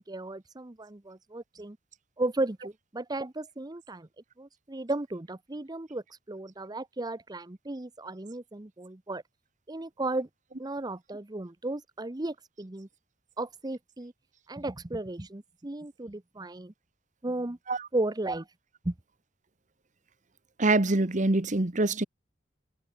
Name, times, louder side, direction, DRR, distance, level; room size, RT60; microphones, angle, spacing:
voice 1, 0.0-1.8 2.2-4.1 4.4-9.2 9.7-10.3 10.6-12.9 13.4-14.1 14.5-16.7 17.2-17.6 17.9-18.5 18.8-18.9, right 2 dB, 20° right, 0.8 m, -35 dB
voice 2, 20.6-22.0, right 2 dB, 45° right, 1.3 m, -24 dB
head